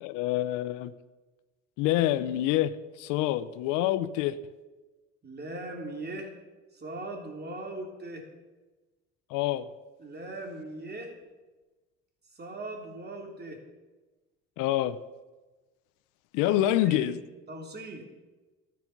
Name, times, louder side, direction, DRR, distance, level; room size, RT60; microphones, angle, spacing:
voice 1, 0.0-0.9 1.8-4.4 9.3-9.7 14.6-15.0 16.3-17.2, left 13 dB, 85° left, 14 dB, 0.7 m, -26 dB
voice 2, 5.2-6.3 6.7-8.2 10.0-11.1 12.3-13.6 16.5-17.2 17.5-18.1, right 2 dB, 30° right, 2 dB, 3.4 m, -39 dB
13.0 x 10.5 x 6.0 m, 1.2 s
supercardioid pair, 85°, 31 cm